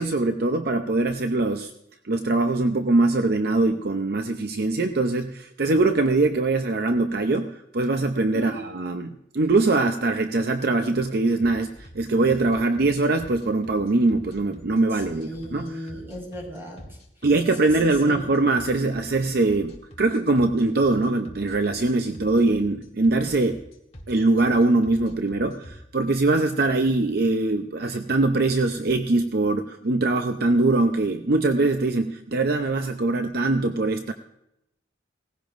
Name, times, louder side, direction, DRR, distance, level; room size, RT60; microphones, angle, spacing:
voice 1, 0.0-1.7 2.0-15.9 17.2-23.6 24.1-34.1, right 2 dB, 55° right, 7 dB, 0.6 m, -22 dB
sound 1, 11.4-25.7, equal, 35° left, 1.5 m, -45 dB
voice 2, 15.1-16.9 17.6-18.2, equal, 15° right, -1 dB, 5.2 m, -36 dB
18.0 x 15.5 x 2.6 m, 0.82 s
head